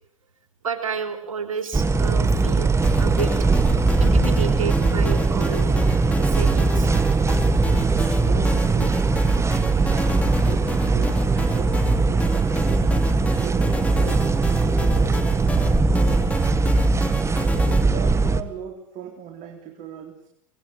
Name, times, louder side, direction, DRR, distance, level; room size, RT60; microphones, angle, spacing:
voice 1, 0.6-2.7 3.0-3.3 4.0-5.7 6.2-7.2, right 6 dB, 90° right, 7 dB, 3.7 m, -31 dB
sound 1, 1.7-18.4, right 3 dB, 15° right, 1.6 m, -20 dB
sound 2, 2.8-17.8, left 1 dB, 10° left, 2.5 m, -33 dB
voice 2, 8.1-9.0 9.9-16.5 17.5-20.3, right 8 dB, 45° right, 3 dB, 3.7 m, -39 dB
24.5 x 19.5 x 9.0 m, 0.76 s
hypercardioid pair, 90°, 17 cm